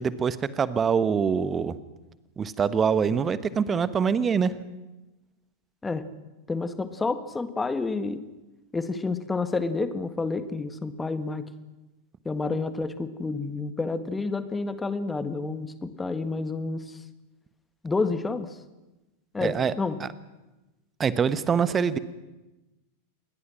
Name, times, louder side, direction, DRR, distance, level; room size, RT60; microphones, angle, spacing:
voice 1, 0.0-1.7 2.4-4.5 19.4-19.7 20.0-20.1 21.0-22.0, right 6 dB, 20° right, 15 dB, 1.2 m, -24 dB
voice 2, 6.5-8.3 8.7-11.5 12.2-16.8 17.8-18.5 19.3-20.0, left 3 dB, 10° left, 11 dB, 1.6 m, -29 dB
28.5 x 21.5 x 6.2 m, 1.1 s
figure-of-eight pair, 90°, 0 cm